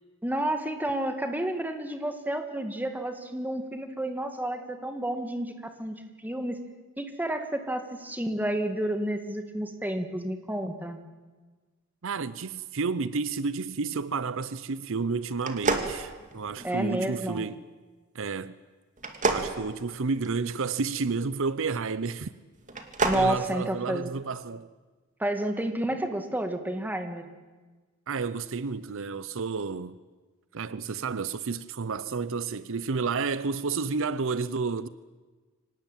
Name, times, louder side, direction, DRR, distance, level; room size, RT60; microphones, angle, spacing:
voice 1, 0.2-6.0 6.2-6.6 7.0-11.0 16.6-17.5 23.0-24.1 25.2-27.3, right 1 dB, 10° right, 2.1 m, -30 dB
voice 2, 12.0-17.6 18.1-18.6 19.3-22.3 23.1-24.7 28.1-30.0 30.5-34.9, right 4 dB, 65° right, 0.7 m, -31 dB
sound 1, 15.4-16.8 19.0-20.6 22.6-23.3, right 3 dB, 35° right, 2.5 m, -29 dB
25.0 x 18.5 x 9.1 m
head